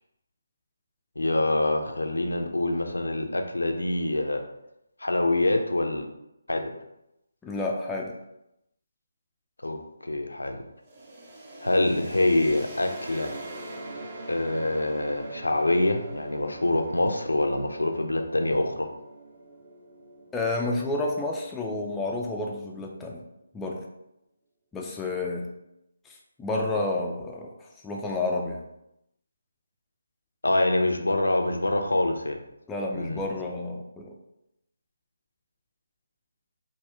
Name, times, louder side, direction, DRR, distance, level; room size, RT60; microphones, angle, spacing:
voice 1, 1.2-4.4 5.0-6.1 6.5-6.7 9.6-10.6 11.6-13.3 14.3-18.9 30.4-32.4 32.9-33.3, left 2 dB, 75° left, 4 dB, 0.4 m, -25 dB
voice 2, 7.4-8.1 20.3-23.2 23.5-23.8 24.7-25.5 26.1-28.7 32.7-34.1, left 2 dB, 10° left, -1 dB, 0.3 m, -30 dB
sound 1, 10.8-22.5, right 2 dB, 35° right, 0.6 m, -43 dB
3.6 x 2.1 x 3.2 m, 0.85 s
figure-of-eight pair, 150°, 0 cm